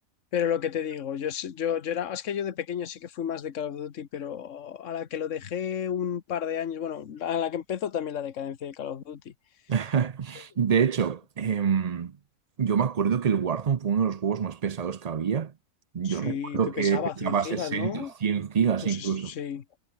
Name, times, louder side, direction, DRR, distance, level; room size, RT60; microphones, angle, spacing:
voice 1, 0.3-9.3 16.0-18.1 18.8-19.6, left 9 dB, 65° left, 1.5 m, -32 dB
voice 2, 9.7-12.1 12.6-15.5 15.9-19.3, right 7 dB, 45° right, 0.5 m, -26 dB
omnidirectional pair, 1.4 m